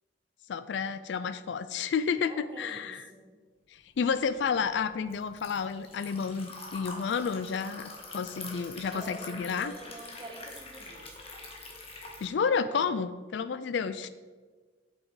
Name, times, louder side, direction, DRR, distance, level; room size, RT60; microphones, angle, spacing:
voice 1, 0.5-3.1 3.7-9.7 12.2-14.1, left 6 dB, 65° left, 13 dB, 0.4 m, -31 dB
voice 2, 2.2-3.3 8.9-11.1, right 1 dB, 25° right, 1 dB, 1.4 m, -47 dB
Liquid, 4.0-12.3, left 3 dB, 30° left, 1.6 m, -45 dB
8.0 x 7.6 x 4.8 m, 1.4 s
head